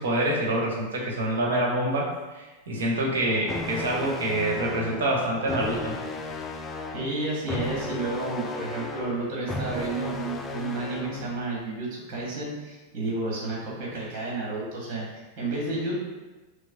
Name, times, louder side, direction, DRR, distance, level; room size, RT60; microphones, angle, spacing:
voice 1, 0.0-5.9, right 1 dB, 60° right, -2 dB, 1.1 m, -26 dB
sound 1, 3.5-11.4, left 2 dB, 20° left, 0.4 m, -35 dB
voice 2, 6.9-16.0, right 2 dB, 40° right, -4 dB, 1.5 m, -31 dB
6.1 x 2.0 x 3.5 m, 1.2 s
figure-of-eight pair, 90°, 0 cm